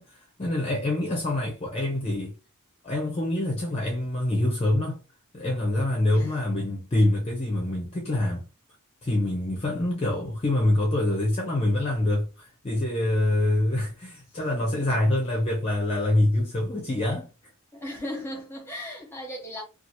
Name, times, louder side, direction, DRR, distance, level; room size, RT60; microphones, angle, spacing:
voice 1, 0.0-2.3 2.8-5.0 5.3-8.4 9.0-17.3, left 1 dB, 25° left, 0.6 m, -25 dB
voice 2, 14.3-15.0 17.7-19.6, left 1 dB, 10° left, 0.9 m, -38 dB
2.8 x 2.4 x 2.8 m
head